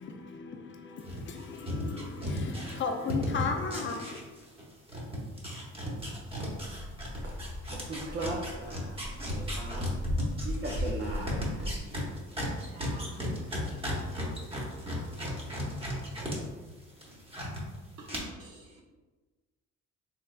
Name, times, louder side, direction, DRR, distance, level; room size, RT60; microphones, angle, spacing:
voice 1, 0.0-4.2, left 5 dB, 40° left, 0.5 m, -36 dB
sound 1, 1.0-4.6 4.9-16.4 16.7-17.6 18.1-18.2, left 1 dB, 20° right, 1.0 m, -35 dB
sound 2, 5.7-11.8, left 1 dB, 50° right, 1.5 m, -38 dB
voice 2, 7.9-9.0 9.3-9.9 10.4-11.7 13.2-13.4, right 2 dB, 35° right, 0.5 m, -37 dB
voice 3, 12.7-13.3 18.0-18.8, right 2 dB, 75° right, 0.8 m, -50 dB
3.3 x 3.3 x 2.4 m
cardioid pair, 90°, 30 cm